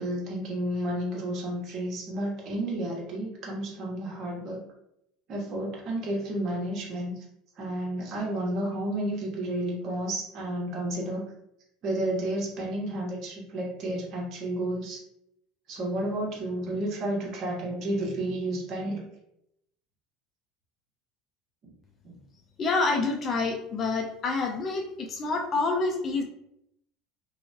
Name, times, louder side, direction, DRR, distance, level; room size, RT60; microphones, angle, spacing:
voice 1, 0.0-4.6 5.3-7.1 7.6-11.3 11.8-15.0 15.7-19.0, right 1 dB, 55° right, -3 dB, 1.1 m, -31 dB
voice 2, 22.6-26.2, left 3 dB, 40° left, 3 dB, 0.5 m, -27 dB
2.9 x 2.3 x 2.8 m, 0.77 s
hypercardioid pair, 90°, 0 cm